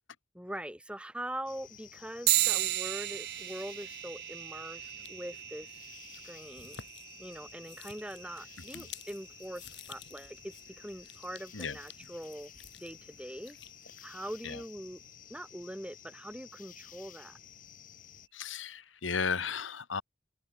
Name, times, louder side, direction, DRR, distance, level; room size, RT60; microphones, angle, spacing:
voice 1, 0.3-6.8 7.2-12.5 12.8-13.6 14.0-15.0 15.3-17.4, right 1 dB, 5° right, 1.8 m, -43 dB
sound 1, 1.5-18.3, left 10 dB, 45° left, 6.5 m, -53 dB
sound 2, 2.3-12.1, right 17 dB, 55° right, 0.6 m, -36 dB
sound 3, 4.8-14.5, left 8 dB, 60° left, 4.4 m, -54 dB
voice 2, 18.3-20.0, left 5 dB, 80° left, 1.4 m, -34 dB
open air
head